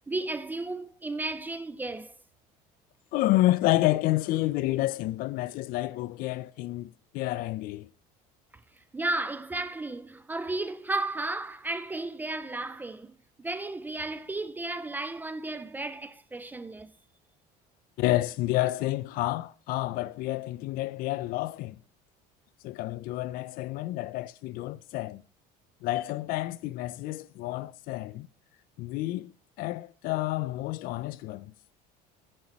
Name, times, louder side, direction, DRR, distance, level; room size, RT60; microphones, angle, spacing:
voice 1, 0.1-2.1 8.8-16.9, right 2 dB, 10° right, 0.3 m, -34 dB
voice 2, 3.1-7.9 18.0-21.8 22.6-25.2 25.8-28.3 28.8-29.3 29.6-31.5, left 17 dB, 55° left, 0.4 m, -29 dB
10.5 x 9.6 x 2.9 m
cardioid pair, 150°, 18 cm